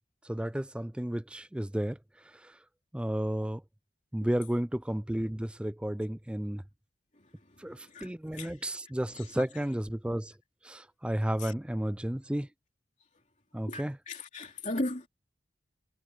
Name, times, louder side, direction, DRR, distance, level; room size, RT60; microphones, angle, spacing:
voice 1, 0.3-2.0 2.4-2.5 2.9-3.6 4.1-6.6 7.6-10.3 10.6-12.5 13.5-14.0, right 1 dB, 5° right, 0.3 m, -32 dB
voice 2, 7.1-8.7 9.1-9.6 11.4-11.5 13.7-15.1, left 1 dB, 40° left, 3.2 m, -39 dB
head